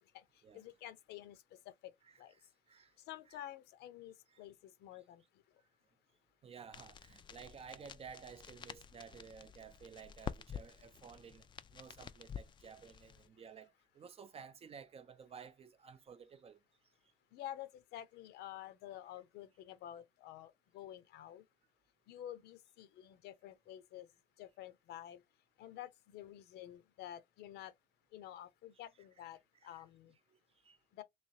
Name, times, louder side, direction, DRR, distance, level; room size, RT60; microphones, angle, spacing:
voice 1, 0.0-1.9 2.2-2.4 3.0-5.6 17.3-21.5 22.1-24.1 24.4-25.2 25.6-27.7 28.1-30.2 30.9-31.0, left 12 dB, 75° left, 0.7 m, -50 dB
voice 2, 2.0-2.9 3.3-3.4 4.3-4.4 4.9-5.0 6.4-11.5 11.7-16.6 29.6-29.8 30.3-30.4 30.6-30.8, right 6 dB, 35° right, 0.5 m, -54 dB
sound 1, 6.7-13.3, left 7 dB, 30° left, 0.3 m, -49 dB
3.2 x 3.1 x 2.7 m
cardioid pair, 110°, 17 cm